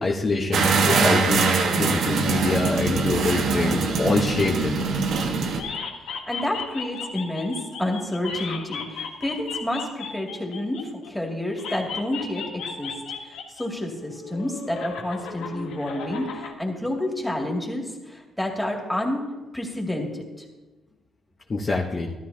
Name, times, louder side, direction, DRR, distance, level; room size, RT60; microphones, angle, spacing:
voice 1, 0.0-1.5 1.8-4.8 21.5-22.1, left 3 dB, 35° left, -1 dB, 1.1 m, -25 dB
sound 1, 0.5-5.6, right 4 dB, 75° right, 1.3 m, -23 dB
sound 2, 2.9-5.3 5.5-11.1 11.6-13.7 13.9-16.5, left 5 dB, 85° left, 1.3 m, -36 dB
voice 2, 6.0-19.3 19.5-20.5, left 1 dB, 5° left, 0 dB, 2.4 m, -29 dB
13.0 x 13.0 x 2.8 m, 1.2 s
cardioid pair, 90°, 0 cm